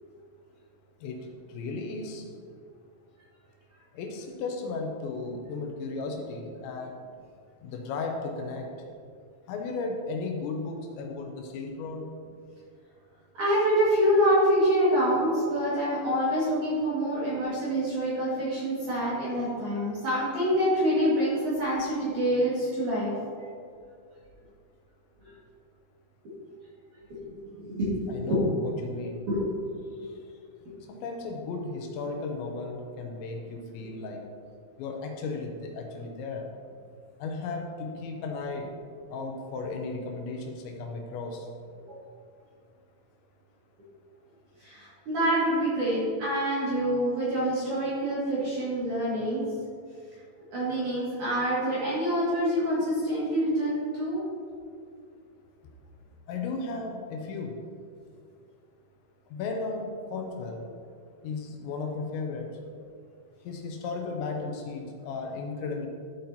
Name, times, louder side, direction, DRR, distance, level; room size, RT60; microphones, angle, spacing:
voice 1, 1.0-2.3 3.9-7.0 7.6-8.7 9.5-12.1 28.1-29.3 30.0-30.2 30.9-34.2 34.8-36.5 37.2-38.8 39.1-41.5 56.3-57.6 59.3-60.7 61.2-62.5 63.5-65.9, left 3 dB, 80° left, 2 dB, 2.7 m, -35 dB
voice 2, 13.4-23.1 25.2-25.3 27.1-28.4 29.3-29.5 29.9-30.0 30.6-30.7 41.9-42.0 44.6-49.4 50.5-54.2, equal, 50° right, -10 dB, 2.7 m, -26 dB
13.0 x 7.7 x 2.8 m, 2.3 s
omnidirectional pair, 5.8 m